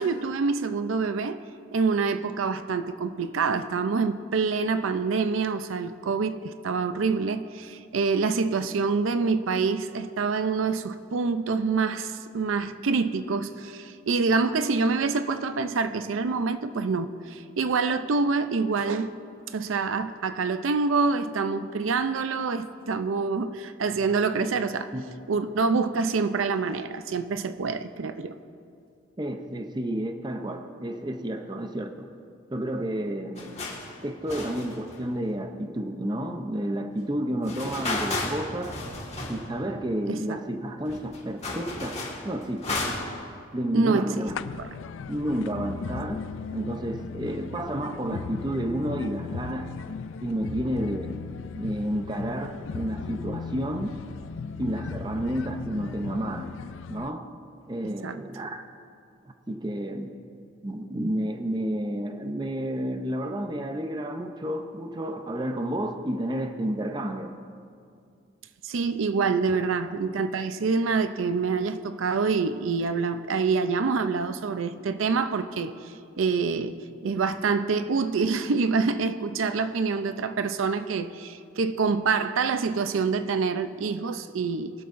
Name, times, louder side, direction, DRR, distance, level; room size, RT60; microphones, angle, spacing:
voice 1, 0.0-1.4 1.7-19.1 19.5-24.9 25.3-28.4 40.1-40.4 43.7-44.3 57.8-58.1 68.6-75.7 76.2-76.8 77.0-84.7, right 4 dB, 80° right, 10 dB, 0.5 m, -26 dB
voice 2, 29.2-32.1 32.5-33.6 34.0-38.8 39.3-42.8 43.5-44.3 45.1-49.7 50.2-51.1 51.6-54.0 54.6-56.5 56.9-57.3 57.7-58.6 59.5-60.1 60.6-67.4 69.5-69.6, right 1 dB, 20° right, 6 dB, 0.6 m, -31 dB
sound 1, 33.4-33.9 34.3-35.3 37.4-39.6 39.9-40.0 40.6-40.7 40.9-43.3, left 2 dB, 35° left, 1.7 m, -33 dB
sound 2, 44.3-57.1, left 5 dB, 75° left, 0.4 m, -37 dB
21.0 x 12.5 x 2.6 m, 2.4 s
head